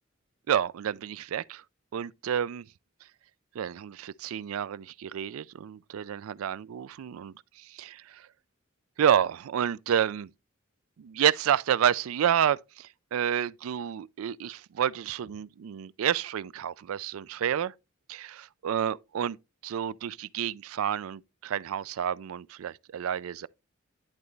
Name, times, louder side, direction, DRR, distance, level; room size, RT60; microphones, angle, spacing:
voice 1, 0.5-1.6 1.9-2.6 3.6-8.3 9.0-10.3 11.0-17.7 18.1-19.4 19.6-23.5, right 9 dB, 90° right, 0.4 m, -29 dB
10.5 x 4.0 x 3.2 m
head